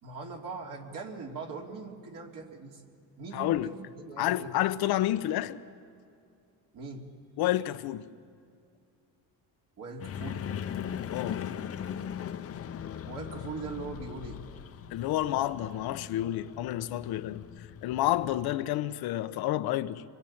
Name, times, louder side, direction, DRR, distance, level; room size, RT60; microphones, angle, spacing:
voice 1, 0.0-2.8 3.2-4.7 6.7-7.1 9.8-10.4 13.0-14.4, right 4 dB, 55° right, 3.1 m, -41 dB
voice 2, 3.3-3.7 4.2-5.6 7.4-8.1 11.1-11.4 14.9-17.4 17.8-20.0, left 14 dB, 70° left, 1.0 m, -29 dB
sound 1, 10.0-18.6, left 9 dB, 40° left, 0.9 m, -39 dB
25.5 x 22.0 x 8.8 m
cardioid pair, 135°, 38 cm